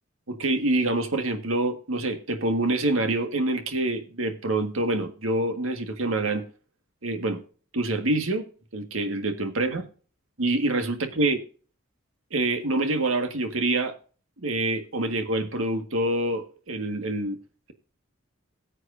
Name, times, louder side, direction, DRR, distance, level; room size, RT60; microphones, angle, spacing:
voice 1, 0.3-6.4 7.0-7.4 7.7-8.5 8.7-9.8 10.4-11.4 12.3-13.9 14.4-17.4, right 2 dB, 85° right, 6 dB, 1.7 m, -26 dB
18.5 x 7.9 x 2.6 m, 0.39 s
head